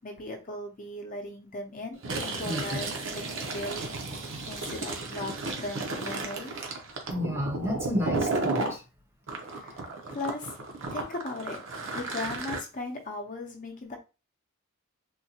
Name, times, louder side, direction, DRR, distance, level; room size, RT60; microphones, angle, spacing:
voice 1, 0.0-3.9 4.5-6.5 9.5-10.6 10.9-11.6 11.9-14.0, left 2 dB, 40° left, 2 dB, 0.7 m, -38 dB
Fill (with liquid), 1.9-8.8 9.3-12.6, right 3 dB, 60° right, 0.7 m, -33 dB
voice 2, 2.4-2.8 7.1-8.8, equal, 10° right, 1 dB, 0.6 m, -31 dB
3.7 x 2.2 x 2.8 m, 0.29 s
head